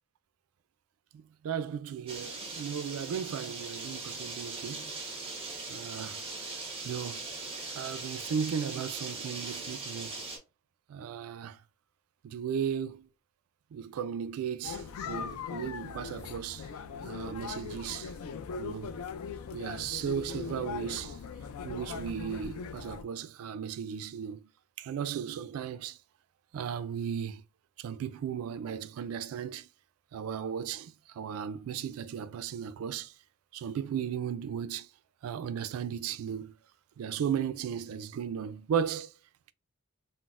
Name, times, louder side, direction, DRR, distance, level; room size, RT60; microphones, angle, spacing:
voice 1, 1.1-4.9 5.7-6.2 6.8-7.3 7.8-10.2 10.9-11.6 12.2-13.1 13.7-16.7 17.0-18.1 18.6-19.0 19.5-21.2 21.6-24.4 24.8-26.0 26.5-27.4 27.8-29.7 30.1-33.1 33.5-34.9 35.2-36.5 37.0-39.1, right 8 dB, 80° right, 0.3 m, -36 dB
sound 1, 2.1-10.4, right 3 dB, 25° right, 1.0 m, -40 dB
sound 2, 14.6-23.0, left 6 dB, 85° left, 0.3 m, -40 dB
4.0 x 2.0 x 2.4 m
head